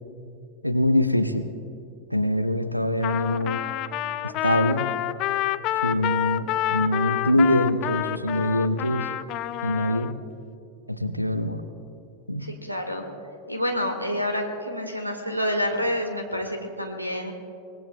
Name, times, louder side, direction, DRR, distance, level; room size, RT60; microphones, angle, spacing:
voice 1, 0.6-1.5 2.1-3.6 4.2-4.8 5.8-9.1 9.6-10.1 10.9-11.6 12.3-12.4, left 1 dB, 90° left, 9 dB, 0.8 m, -24 dB
Trumpet, 3.0-10.1, left 13 dB, 40° left, 0.4 m, -28 dB
voice 2, 12.4-13.0 13.5-17.3, equal, 90° right, 4 dB, 1.8 m, -28 dB
24.0 x 20.0 x 2.3 m, 2.6 s
figure-of-eight pair, 90°, 0 cm